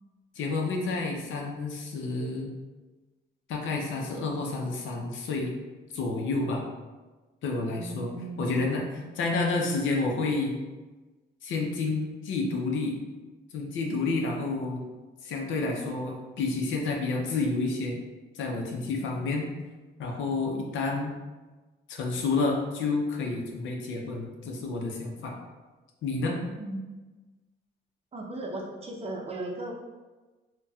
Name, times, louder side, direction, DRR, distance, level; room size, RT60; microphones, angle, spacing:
voice 1, 0.4-2.5 3.5-5.5 5.9-6.7 7.4-8.1 8.4-8.8 9.2-10.5 11.4-13.0 13.5-14.8 15.2-18.0 18.3-19.4 20.0-21.1 21.9-25.4 26.0-26.4, left 3 dB, 75° left, 0 dB, 0.6 m, -29 dB
voice 2, 7.7-9.4 26.6-26.9 28.1-29.7, right 2 dB, 30° right, -1 dB, 0.6 m, -37 dB
4.0 x 2.2 x 2.3 m, 1.2 s
cardioid pair, 90°, 20 cm